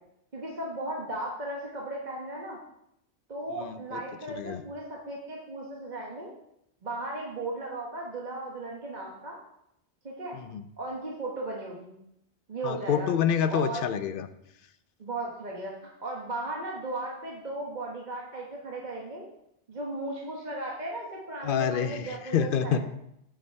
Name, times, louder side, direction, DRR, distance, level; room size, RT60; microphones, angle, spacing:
voice 1, 0.3-2.6 3.3-6.3 6.8-9.4 10.0-10.4 10.8-12.0 12.5-13.1 13.5-13.9 15.0-19.2 19.7-22.8, right 2 dB, 40° right, -2 dB, 1.4 m, -36 dB
voice 2, 3.6-4.0 4.4-4.6 10.3-10.6 12.6-14.3 21.4-22.8, left 8 dB, 60° left, 11 dB, 0.7 m, -27 dB
8.0 x 6.3 x 4.6 m, 0.77 s
omnidirectional pair, 1.1 m